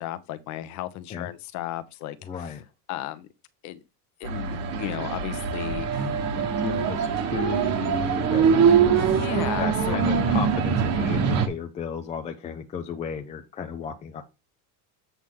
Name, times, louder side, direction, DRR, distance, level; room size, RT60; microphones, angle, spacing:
voice 1, 0.0-2.6 2.9-3.3 3.6-3.8 4.2-6.1 9.0-10.0, left 13 dB, 40° left, 1.0 m, -34 dB
voice 2, 2.2-2.6 6.4-8.5 9.0-9.2 9.6-14.2, left 7 dB, 15° left, 0.5 m, -34 dB
sound 1, 4.2-11.5, right 6 dB, 35° right, 1.3 m, -23 dB
8.3 x 5.9 x 3.6 m
cardioid pair, 170°, 42 cm